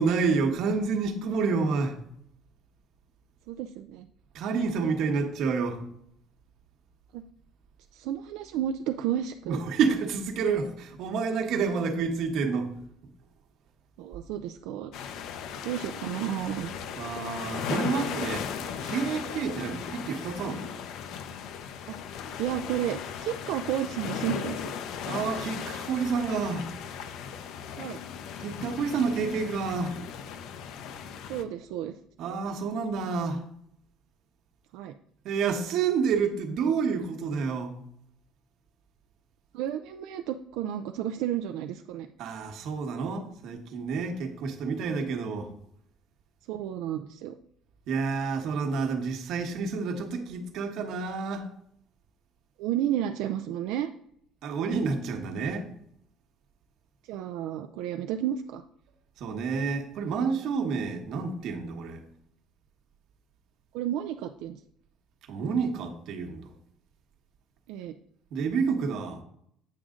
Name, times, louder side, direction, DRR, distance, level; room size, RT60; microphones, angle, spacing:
voice 1, 0.0-2.0 4.3-5.8 9.4-12.7 17.0-18.5 18.8-20.7 25.0-26.7 28.4-30.0 32.2-33.4 35.2-37.7 42.2-45.5 47.9-51.5 54.4-55.7 59.2-62.0 65.3-66.5 68.3-69.2, right 5 dB, 60° right, 1.2 m, -29 dB
voice 2, 3.5-4.1 7.1-7.2 7.9-9.6 14.0-14.9 15.6-16.7 21.9-22.0 22.4-24.7 27.8-28.0 31.3-32.0 34.7-34.9 39.5-42.1 46.5-47.4 52.6-53.9 57.1-58.6 63.7-64.6 67.7-67.9, right 11 dB, 85° right, 0.4 m, -32 dB
sound 1, 14.9-31.4, left 7 dB, 65° left, 0.6 m, -37 dB
8.5 x 6.3 x 3.7 m
cardioid pair, 160°, 0 cm